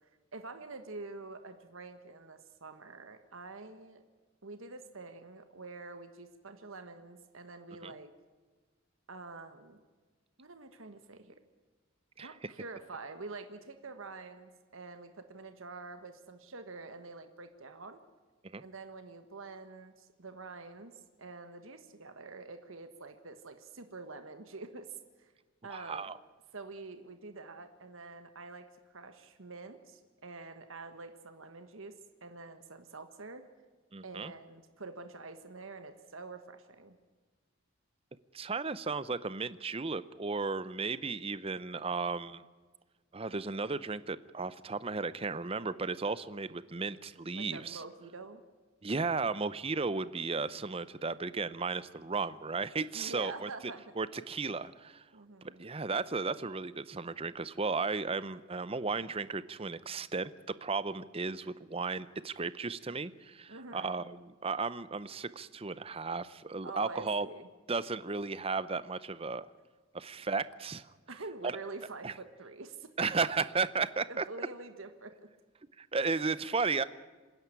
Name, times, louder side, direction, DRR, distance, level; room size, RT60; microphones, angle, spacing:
voice 1, 0.3-4.0 4.4-8.1 9.1-9.8 10.4-11.3 12.2-18.0 18.6-20.9 21.2-25.3 25.6-26.1 26.5-33.4 34.0-37.0 47.3-48.4 52.9-54.0 55.1-55.7 63.5-64.0 66.6-67.5 71.1-73.1 74.1-75.2, right 3 dB, 70° right, 8 dB, 1.4 m, -46 dB
voice 2, 25.7-26.1 33.9-34.3 38.3-42.4 43.1-47.8 48.8-53.5 54.0-55.0 55.6-60.3 60.6-67.3 67.7-69.5 69.9-70.9 71.4-71.6 72.0-72.1 73.0-74.2 75.8-76.8, right 4 dB, 25° right, 15 dB, 0.6 m, -34 dB
26.5 x 10.5 x 9.9 m, 1.3 s
head